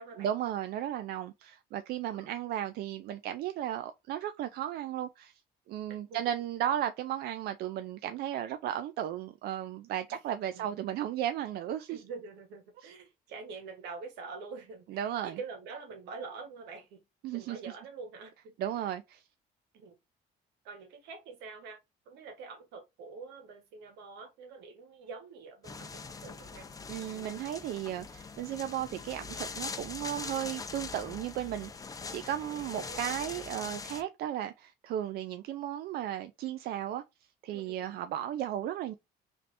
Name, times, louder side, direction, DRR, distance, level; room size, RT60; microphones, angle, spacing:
voice 1, 0.2-5.3 5.7-12.0 14.9-15.4 17.2-17.7 18.6-19.2 26.9-37.0 37.4-38.9, right 11 dB, 70° right, 0.4 m, -35 dB
voice 2, 5.9-6.2 10.1-10.2 10.5-11.1 11.9-17.0 17.3-18.9 19.7-20.0 20.6-21.8 22.1-26.7 32.5-33.4 37.5-37.9, right 4 dB, 90° right, 1.3 m, -46 dB
sound 1, 25.6-34.0, left 4 dB, 20° left, 0.5 m, -42 dB
3.2 x 2.8 x 4.0 m
cardioid pair, 110°, 17 cm